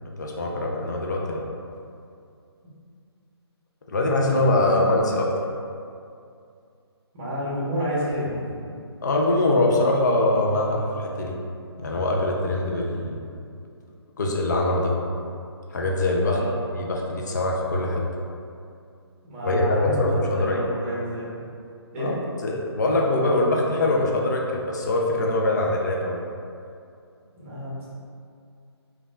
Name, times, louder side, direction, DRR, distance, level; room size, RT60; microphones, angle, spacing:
voice 1, 0.2-1.4 3.9-5.3 9.0-11.4 11.8-13.2 14.2-14.9 15.7-16.4 16.7-18.0 19.4-20.6 22.0-22.2 22.4-26.2, left 2 dB, 40° left, -1 dB, 0.4 m, -23 dB
voice 2, 4.2-4.8 7.1-8.8 16.2-16.6 19.2-21.4 21.9-22.2 27.4-27.9, equal, 30° right, -9 dB, 1.0 m, -30 dB
3.3 x 2.3 x 2.3 m, 2.4 s
figure-of-eight pair, 140°, 14 cm